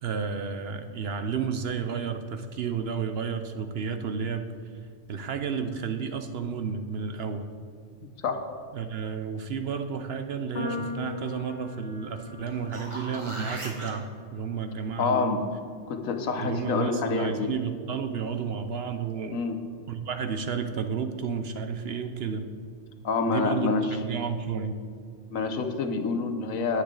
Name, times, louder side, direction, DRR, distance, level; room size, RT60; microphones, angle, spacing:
voice 1, 0.0-4.4 5.1-7.5 8.7-14.1 14.3-15.3 16.3-19.4 19.9-22.5 23.3-24.8, right 6 dB, 60° right, 8 dB, 0.7 m, -31 dB
sound 1, 10.5-16.9, left 3 dB, 50° left, 2.4 m, -41 dB
sound 2, 12.5-13.9 18.7-18.8, right 1 dB, 25° right, 1.3 m, -38 dB
voice 2, 15.0-15.4 15.9-17.5 19.3-19.6 23.0-23.9 25.3-26.8, left 4 dB, 85° left, 6 dB, 1.3 m, -27 dB
10.0 x 9.5 x 3.8 m, 2.3 s
omnidirectional pair, 1.4 m